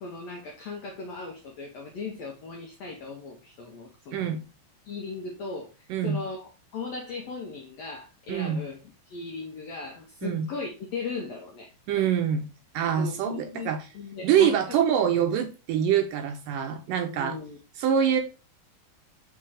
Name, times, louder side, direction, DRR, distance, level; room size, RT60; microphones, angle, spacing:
voice 1, 0.0-4.3 4.8-5.7 6.0-8.8 9.1-11.7 13.0-14.8 17.1-17.6, left 4 dB, 80° left, 1 dB, 1.5 m, -37 dB
voice 2, 5.9-6.2 8.3-8.6 10.2-10.5 11.9-12.5 12.7-13.9 14.2-17.4 17.8-18.2, right 8 dB, 75° right, 5 dB, 2.1 m, -25 dB
5.9 x 3.7 x 4.8 m, 0.32 s
omnidirectional pair, 4.3 m